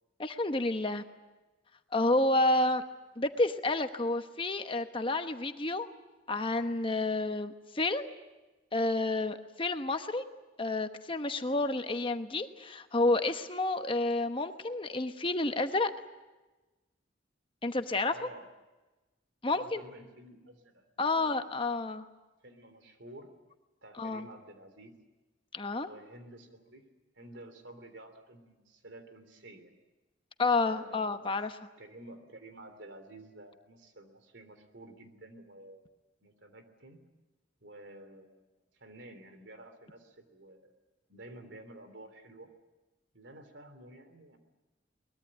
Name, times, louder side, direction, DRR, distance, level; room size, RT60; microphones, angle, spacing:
voice 1, 0.2-1.0 1.9-2.8 3.2-5.9 6.3-8.1 8.7-10.3 10.6-15.9 17.6-18.1 19.4-19.8 21.0-22.0 24.0-24.3 25.5-25.9 30.4-31.6, left 2 dB, 25° left, 8 dB, 1.0 m, -30 dB
voice 2, 18.0-18.5 19.5-21.8 22.4-23.3 23.8-25.0 25.8-26.8 27.1-29.7 30.6-31.2 31.8-35.9 36.2-37.0 37.6-38.5 38.7-40.8 41.1-42.5 43.1-44.4, right 1 dB, 70° right, 8 dB, 3.3 m, -51 dB
23.0 x 21.0 x 9.0 m, 1.1 s
head